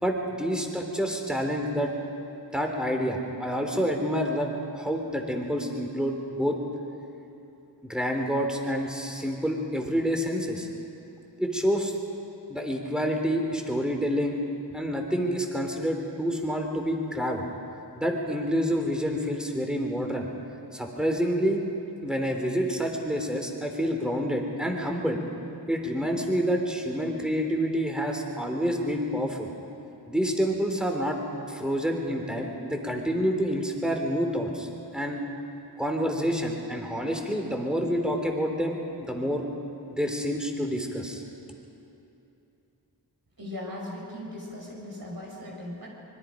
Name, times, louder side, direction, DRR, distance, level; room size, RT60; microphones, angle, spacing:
voice 1, 0.0-1.9 2.5-6.6 7.9-10.7 11.4-12.0 12.5-14.4 14.7-17.4 18.0-20.3 20.7-21.6 22.0-25.2 25.7-29.5 30.1-31.2 31.5-34.7 34.9-35.2 35.8-39.4 39.9-41.2, equal, ahead, 2 dB, 3.5 m, -28 dB
voice 2, 43.4-45.9, left 1 dB, 55° right, -3 dB, 5.4 m, -38 dB
25.5 x 21.5 x 5.2 m, 2.9 s
cardioid pair, 50°, 42 cm